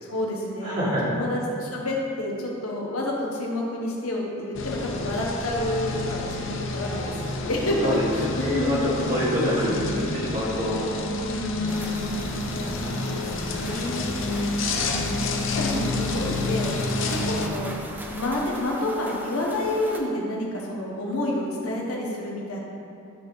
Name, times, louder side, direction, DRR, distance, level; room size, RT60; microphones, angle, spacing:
voice 1, 0.0-8.8 11.2-12.2 12.7-14.1 14.8-16.7 17.1-17.7 18.1-22.6, left 1 dB, 80° left, -2 dB, 1.5 m, -29 dB
voice 2, 0.6-1.1 7.8-10.9 12.5-14.6, equal, 40° right, -8 dB, 2.3 m, -28 dB
sound 1, 4.5-17.5, left 2 dB, 60° left, 0.8 m, -29 dB
sound 2, 11.7-20.0, right 1 dB, 10° right, 0.7 m, -41 dB
12.5 x 4.5 x 4.9 m, 2.6 s
head